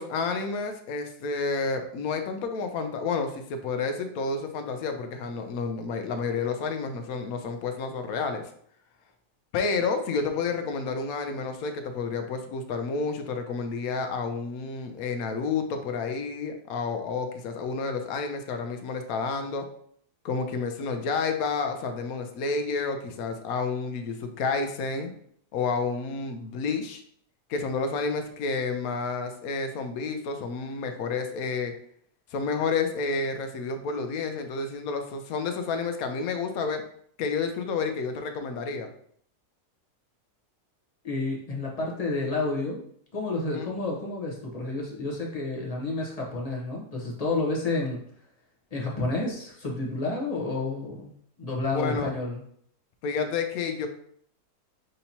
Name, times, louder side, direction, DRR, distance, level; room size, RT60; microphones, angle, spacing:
voice 1, 0.0-8.4 9.5-19.6 20.2-25.1 25.5-27.0 27.5-31.7 32.3-36.8 37.2-38.9 43.5-43.7 51.7-52.1 53.0-53.9, left 4 dB, 70° left, 6 dB, 0.9 m, -30 dB
voice 2, 41.0-42.8 43.1-48.0 48.7-51.1 51.4-52.4, left 2 dB, 35° left, -2 dB, 0.6 m, -30 dB
6.4 x 2.8 x 2.7 m, 0.64 s
omnidirectional pair, 1.8 m